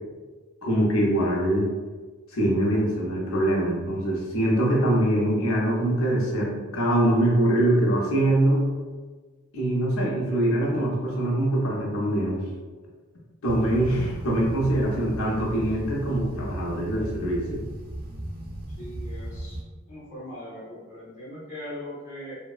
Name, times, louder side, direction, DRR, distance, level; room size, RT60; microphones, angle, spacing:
voice 1, 0.6-1.7 2.3-8.6 9.5-12.4 13.4-17.6, right 1 dB, 80° left, -3 dB, 0.7 m, -23 dB
sound 1, 13.4-19.6, right 1 dB, 45° right, 0.5 m, -36 dB
voice 2, 18.8-19.6 19.9-22.4, left 1 dB, 35° left, -9 dB, 0.7 m, -40 dB
2.7 x 2.1 x 2.3 m, 1.4 s
head